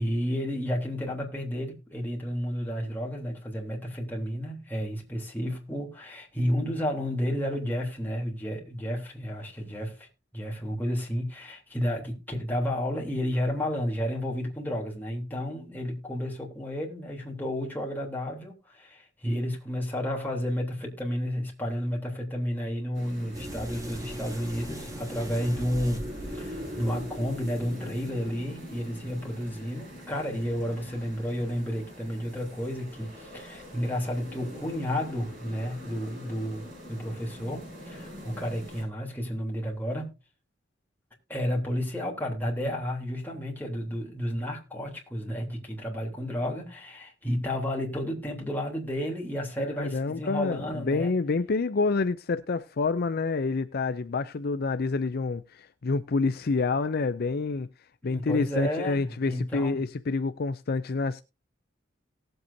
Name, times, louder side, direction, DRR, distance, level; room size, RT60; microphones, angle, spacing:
voice 1, 0.0-10.1 10.3-40.1 41.3-51.1 58.0-59.8, equal, 10° left, 3.3 m, -31 dB
sound 1, 22.9-38.8, left 1 dB, 45° right, 7.3 m, -44 dB
sound 2, 23.3-28.4, equal, 20° right, 2.5 m, -40 dB
voice 2, 49.6-57.7 58.0-61.2, left 4 dB, 55° left, 0.5 m, -28 dB
18.5 x 7.9 x 2.7 m
head